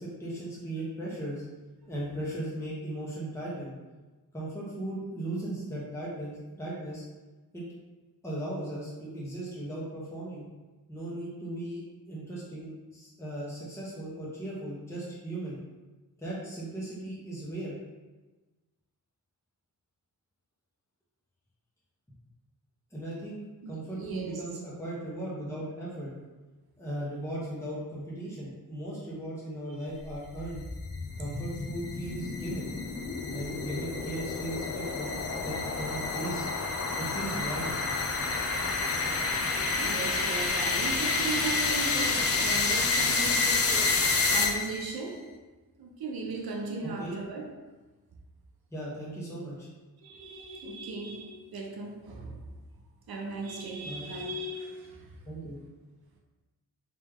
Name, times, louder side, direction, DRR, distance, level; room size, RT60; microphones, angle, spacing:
voice 1, 0.0-1.4 1.9-3.7 4.3-7.0 7.5-7.6 8.2-10.4 10.9-15.6 16.2-17.8 22.9-23.4 23.7-26.1 26.8-30.6 31.2-32.7 33.3-36.5 37.0-37.8 46.8-47.2 48.7-49.7 53.8-54.1 55.3-55.6, right 1 dB, 5° left, 1.1 m, -37 dB
voice 2, 23.6-24.4 31.1-31.5 39.8-45.3 45.8-47.5 50.0-52.5 53.1-55.2, right 3 dB, 80° right, 0.8 m, -37 dB
sound 1, 30.1-44.9, left 3 dB, 40° left, 0.6 m, -29 dB
3.4 x 3.1 x 3.5 m
cardioid pair, 80°, 36 cm